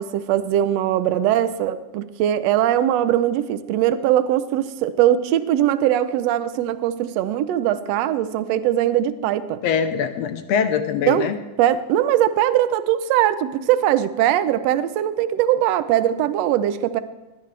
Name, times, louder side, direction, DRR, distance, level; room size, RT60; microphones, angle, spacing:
voice 1, 0.0-9.6 11.1-11.3 11.6-17.0, right 12 dB, 70° right, 12 dB, 1.8 m, -20 dB
voice 2, 9.6-11.4, left 7 dB, 70° left, 9 dB, 1.8 m, -22 dB
21.0 x 18.0 x 3.4 m, 1.1 s
omnidirectional pair, 3.3 m